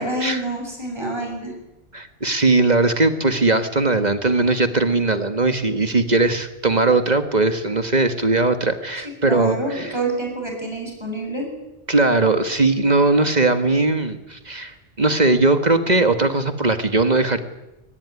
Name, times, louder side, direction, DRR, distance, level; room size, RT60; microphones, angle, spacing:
voice 1, 0.0-1.5 9.2-11.5, right 2 dB, 25° right, 2 dB, 7.8 m, -27 dB
voice 2, 1.9-9.9 11.9-17.4, right 2 dB, 40° right, 8 dB, 1.7 m, -19 dB
23.0 x 19.5 x 9.9 m, 0.96 s
omnidirectional pair, 1.1 m